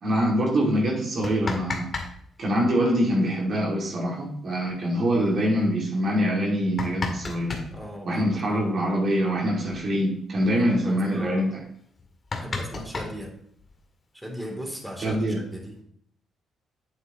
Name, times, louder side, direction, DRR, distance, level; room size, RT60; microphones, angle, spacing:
voice 1, 0.0-1.9 2.4-7.6 8.0-11.5 15.0-15.4, equal, 55° right, -2 dB, 2.4 m, -24 dB
sound 1, 1.0-2.1 2.4-2.5 4.2-4.3 4.7-4.8 5.4-5.5 6.3-7.7 9.2-9.3 9.6-9.8 10.2-10.5 11.1-11.2 11.6-11.7 12.0-13.8 14.7-15.6, left 3 dB, 40° left, 2.0 m, -33 dB
voice 2, 7.7-8.9 10.4-11.6 12.4-13.4 14.1-15.7, equal, 5° right, 0 dB, 3.0 m, -38 dB
8.2 x 7.7 x 3.0 m, 0.65 s
supercardioid pair, 55°, 0 cm